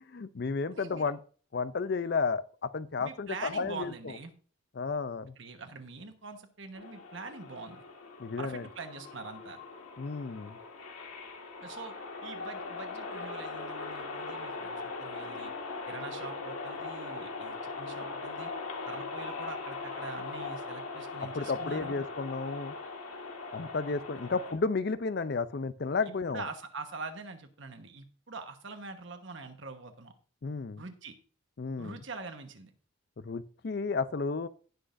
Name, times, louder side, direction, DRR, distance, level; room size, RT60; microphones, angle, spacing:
voice 1, 0.1-1.2 1.5-4.1 4.8-5.3 8.2-8.7 10.0-10.6 21.3-22.7 23.5-26.5 30.4-30.8 31.6-32.0 33.2-34.5, left 4 dB, 50° left, 15 dB, 0.5 m, -32 dB
voice 2, 0.7-1.0 3.0-4.3 5.4-7.8 8.4-9.6 11.6-12.0 12.2-15.5 15.9-18.5 18.9-21.9 23.9-24.0 24.3-24.4 26.3-30.1 30.8-31.2 31.8-32.7, right 4 dB, 60° right, 6 dB, 1.2 m, -44 dB
sound 1, 6.7-24.5, left 3 dB, 90° left, 1.8 m, -40 dB
17.5 x 6.2 x 2.6 m, 0.41 s
head